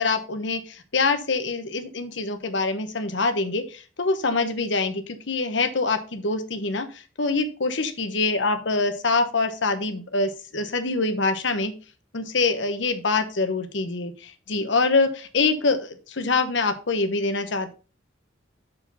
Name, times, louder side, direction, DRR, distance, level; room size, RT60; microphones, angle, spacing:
voice 1, 0.0-11.7 12.1-17.7, left 3 dB, 70° left, 8 dB, 1.0 m, -25 dB
6.5 x 4.9 x 5.4 m, 0.34 s
head